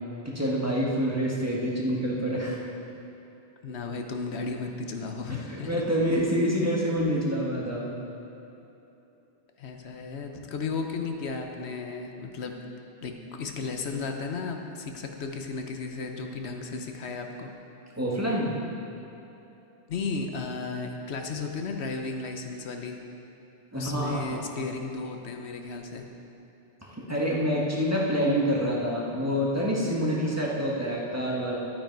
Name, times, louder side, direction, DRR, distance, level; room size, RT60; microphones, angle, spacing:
voice 1, 0.2-2.6 5.3-7.9 10.3-10.4 18.0-18.5 23.7-24.7 26.8-31.6, equal, 15° right, -5 dB, 1.6 m, -27 dB
voice 2, 3.6-5.8 9.6-12.6 13.0-17.5 19.9-23.0 23.7-26.1, left 4 dB, 85° left, 4 dB, 1.1 m, -34 dB
12.0 x 8.8 x 4.7 m, 3.0 s
omnidirectional pair, 1.1 m